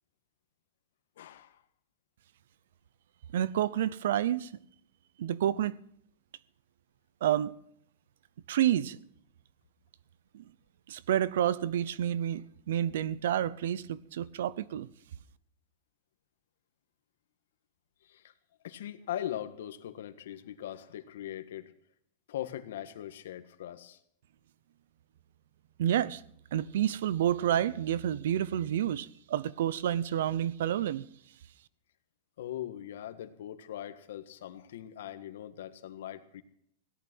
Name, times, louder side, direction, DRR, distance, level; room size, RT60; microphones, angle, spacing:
voice 1, 1.2-1.6 18.1-18.3 18.6-21.7 22.3-24.0 32.4-36.4, left 11 dB, 80° left, 1.5 m, -40 dB
voice 2, 3.3-4.5 5.2-5.7 7.2-7.5 8.5-9.0 10.3-10.4 10.9-14.9 25.8-26.2 26.5-31.1, right 11 dB, 75° right, 0.7 m, -29 dB
17.0 x 11.5 x 6.2 m
supercardioid pair, 160°, 0 cm